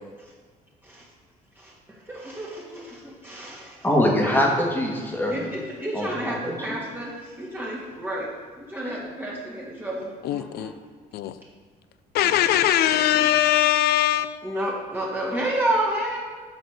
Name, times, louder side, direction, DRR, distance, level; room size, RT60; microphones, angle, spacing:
voice 1, 2.1-3.9 4.2-4.4 5.3-8.3 8.6-10.7 12.2-13.3 14.4-16.2, right 1 dB, 10° right, -5 dB, 1.8 m, -31 dB
voice 2, 3.8-5.5 5.9-6.8, left 1 dB, 10° left, -1 dB, 1.8 m, -23 dB
voice 3, 10.2-10.7 11.1-11.3 12.1-14.4, left 12 dB, 70° left, 13 dB, 0.5 m, -21 dB
8.3 x 4.2 x 6.4 m, 1.5 s
cardioid pair, 110°, 17 cm